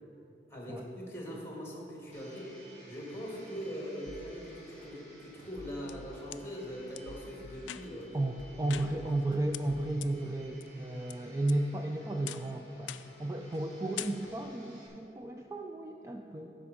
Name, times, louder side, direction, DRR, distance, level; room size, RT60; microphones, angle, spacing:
voice 1, 0.5-2.5 2.9-8.2 8.7-9.1, equal, 15° left, -2 dB, 1.7 m, -42 dB
Domestic sounds home sounds, 2.1-14.9, equal, 35° right, 2.3 m, -56 dB
sound 1, 4.1-4.2 4.8-4.9 5.4-6.4 6.9-8.0 8.4-9.4 9.7-9.9, left 1 dB, 55° left, 0.6 m, -50 dB
sound 2, 5.5-6.4 6.9-7.0 7.6-8.1 8.7-9.2 9.5-9.6 10.0-10.1 10.6-11.1 11.5-11.9 12.3-12.5 12.9-13.2 13.5-13.7 14.0-14.5, left 13 dB, 85° left, 0.3 m, -44 dB
voice 2, 8.1-12.9 13.2-16.5, right 1 dB, 15° right, 3 dB, 0.3 m, -33 dB
13.0 x 5.1 x 5.0 m, 2.9 s
head